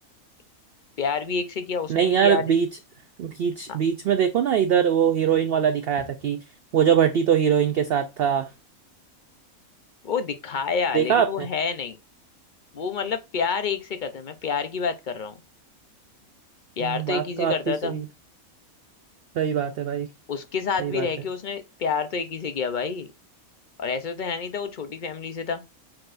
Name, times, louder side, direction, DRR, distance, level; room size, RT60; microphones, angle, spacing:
voice 1, 1.0-2.5 3.7-3.8 10.0-12.0 12.7-15.4 16.8-18.0 20.3-23.1 23.8-25.6, left 5 dB, 50° left, 0.6 m, -28 dB
voice 2, 1.9-2.7 3.2-6.4 6.7-8.5 10.9-11.5 16.8-18.1 19.4-20.1 20.8-21.1, right 8 dB, 65° right, 0.6 m, -22 dB
8.6 x 4.3 x 2.5 m
omnidirectional pair, 1.5 m